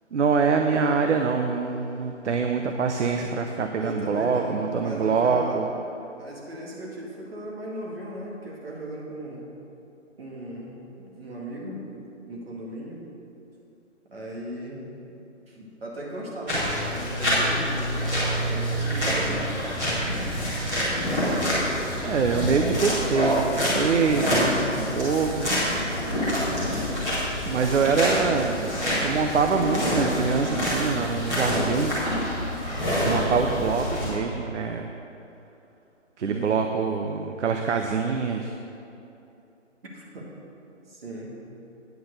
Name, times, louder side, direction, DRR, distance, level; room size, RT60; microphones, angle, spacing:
voice 1, 0.1-5.7 22.0-25.5 27.4-31.9 33.0-34.9 36.2-38.5, right 5 dB, 65° right, 5 dB, 0.7 m, -25 dB
voice 2, 3.8-5.6 6.2-9.5 10.2-10.7 11.0-13.0 14.1-14.8 15.5-19.5 36.2-36.6 39.8-40.3 40.9-41.4, right 1 dB, 50° right, -3 dB, 2.2 m, -37 dB
sound 1, 16.5-34.1, equal, 10° right, 1.5 m, -26 dB
9.3 x 5.8 x 6.5 m, 2.8 s
hypercardioid pair, 170°, 38 cm